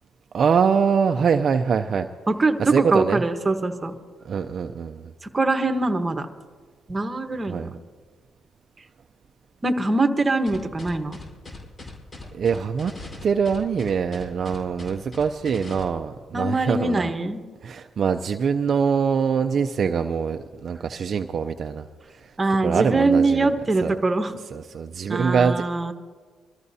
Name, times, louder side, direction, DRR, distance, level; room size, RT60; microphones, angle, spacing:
voice 1, 0.3-2.1 2.6-3.2 4.2-5.1 7.5-7.7 12.3-12.9 13.2-17.1 17.6-21.9 22.1-22.3 22.6-23.5 23.8-23.9 24.5-25.6, right 6 dB, 50° right, 6 dB, 0.5 m, -23 dB
voice 2, 2.3-3.9 5.2-6.3 6.9-7.7 9.6-11.2 16.3-17.4 22.4-24.3 25.1-25.9, right 2 dB, 25° right, 7 dB, 1.1 m, -23 dB
sound 1, 10.5-15.8, left 2 dB, 40° left, 4.6 m, -39 dB
24.5 x 14.0 x 2.8 m, 1.5 s
cardioid pair, 90°, 0 cm